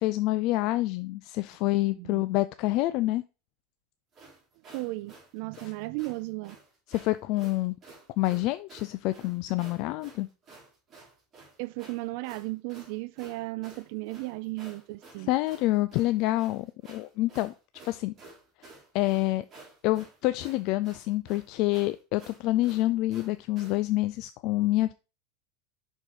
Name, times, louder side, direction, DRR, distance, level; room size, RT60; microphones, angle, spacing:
voice 1, 0.0-3.2 6.9-7.7 8.2-10.3 15.3-17.5 17.8-18.1 18.9-19.4 19.8-25.0, left 17 dB, 55° left, 0.3 m, -27 dB
voice 2, 1.9-2.3 4.7-6.6 11.6-15.3, right 22 dB, 60° right, 0.3 m, -35 dB
sound 1, 4.1-23.8, right 3 dB, 25° right, 3.5 m, -52 dB
6.0 x 4.4 x 4.8 m
supercardioid pair, 135°, 0 cm